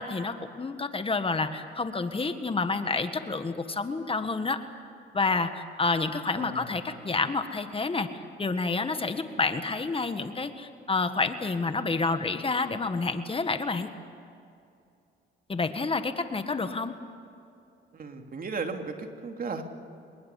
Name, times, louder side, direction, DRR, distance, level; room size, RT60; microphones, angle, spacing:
voice 1, 0.0-4.6 5.1-8.1 8.4-13.9 15.5-16.9, left 3 dB, 25° left, 9 dB, 1.6 m, -29 dB
voice 2, 6.4-6.7 17.9-19.6, right 4 dB, 45° right, 5 dB, 2.8 m, -35 dB
26.5 x 22.0 x 8.5 m, 2.5 s
cardioid pair, 90°, 20 cm